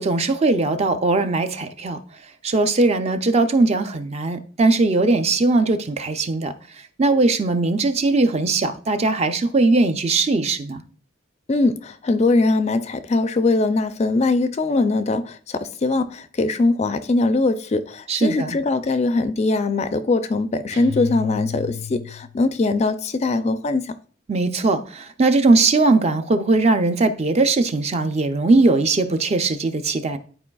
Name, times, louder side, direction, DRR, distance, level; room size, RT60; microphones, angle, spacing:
voice 1, 0.0-2.0 2.4-6.5 7.0-10.8 18.1-18.5 24.3-30.2, right 3 dB, 35° right, 0.4 m, -19 dB
voice 2, 11.5-23.8, left 3 dB, 35° left, 0.4 m, -21 dB
sound 1, 20.7-22.4, left 7 dB, 80° right, 1.1 m, -32 dB
11.0 x 4.6 x 2.3 m
head